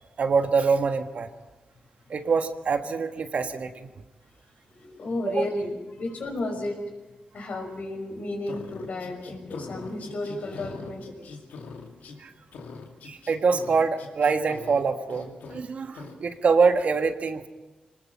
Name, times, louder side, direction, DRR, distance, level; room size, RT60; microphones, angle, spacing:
voice 1, 0.2-1.3 2.1-3.9 5.3-5.5 7.4-7.6 12.2-12.3 13.0-17.5, right 5 dB, 55° right, 7 dB, 1.5 m, -25 dB
voice 2, 4.8-6.8 7.3-11.4, left 2 dB, 60° left, 3 dB, 5.6 m, -33 dB
sound 1, 8.5-12.2 12.5-14.8 15.1-15.6 15.9-16.2, left 4 dB, 90° left, 2.5 m, -42 dB
25.0 x 19.5 x 5.8 m, 1.1 s
cardioid pair, 90°, 3 cm